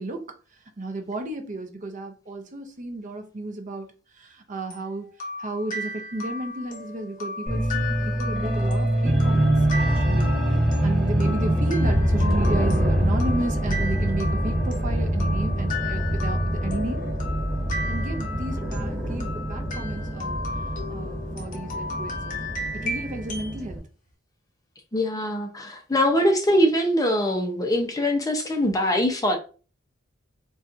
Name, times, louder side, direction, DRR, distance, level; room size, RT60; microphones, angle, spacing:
voice 1, 0.0-3.9 4.1-5.1 5.4-17.0 17.9-20.6 20.9-22.4 22.7-23.8, right 2 dB, 40° right, 0.6 m, -33 dB
sound 1, 4.7-23.6, left 2 dB, 45° left, 0.8 m, -35 dB
sound 2, 7.5-23.8, right 1 dB, 5° right, 1.3 m, -24 dB
voice 2, 24.9-29.4, equal, 20° left, 0.5 m, -22 dB
4.1 x 2.3 x 2.5 m
head